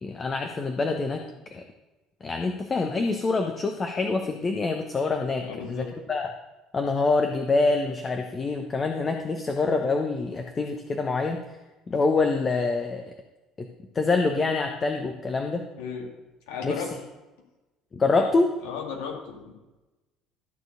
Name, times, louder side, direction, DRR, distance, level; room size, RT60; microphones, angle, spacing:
voice 1, 0.0-1.2 1.5-1.6 2.2-6.3 6.7-11.4 11.9-13.0 13.6-13.7 13.9-15.7 16.6-16.7 17.9-18.5, left 3 dB, 30° left, 4 dB, 1.0 m, -25 dB
voice 2, 5.4-5.9 15.8-16.1 16.5-16.9 18.6-19.5, left 6 dB, 65° left, 0 dB, 2.2 m, -35 dB
13.5 x 4.6 x 6.5 m, 1.1 s
figure-of-eight pair, 55°, 0 cm